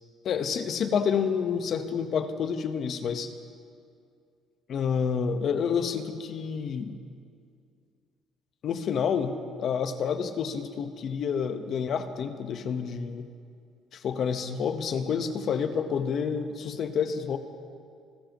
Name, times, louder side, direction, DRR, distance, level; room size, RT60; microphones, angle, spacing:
voice 1, 0.2-3.3 4.7-6.9 8.6-13.3 13.9-17.4, left 6 dB, 60° left, 8 dB, 1.1 m, -29 dB
26.5 x 14.5 x 3.1 m, 2.3 s
supercardioid pair, 85°, 0 cm